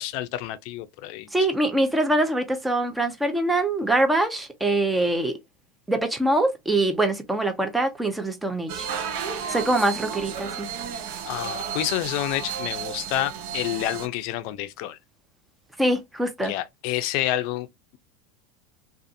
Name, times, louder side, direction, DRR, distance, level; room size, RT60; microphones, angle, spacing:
voice 1, 0.0-1.3 11.3-15.0 16.4-17.7, left 14 dB, 60° left, 0.4 m, -29 dB
voice 2, 1.3-5.4 5.9-8.9 9.5-10.7 15.8-16.5, right 1 dB, 5° right, 0.6 m, -23 dB
sound 1, 8.7-14.1, right 7 dB, 70° right, 0.6 m, -32 dB
2.5 x 2.4 x 2.6 m
supercardioid pair, 115°, 0 cm